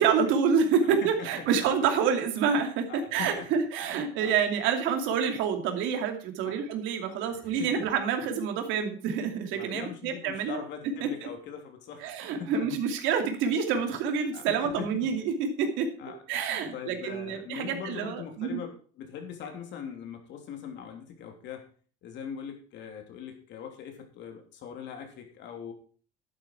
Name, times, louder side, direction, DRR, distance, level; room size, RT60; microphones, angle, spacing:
voice 1, 0.0-10.6 11.0-11.1 12.0-15.9 16.3-18.6, right 6 dB, 75° right, 5 dB, 2.6 m, -27 dB
voice 2, 0.8-1.7 2.9-3.5 3.9-4.3 6.4-6.6 7.1-7.9 9.5-12.7 13.7-13.9 14.3-15.1 16.0-16.2 16.7-21.7 22.0-25.7, left 7 dB, 65° left, 4 dB, 3.3 m, -41 dB
11.0 x 9.6 x 4.7 m, 0.42 s
supercardioid pair, 100°, 20 cm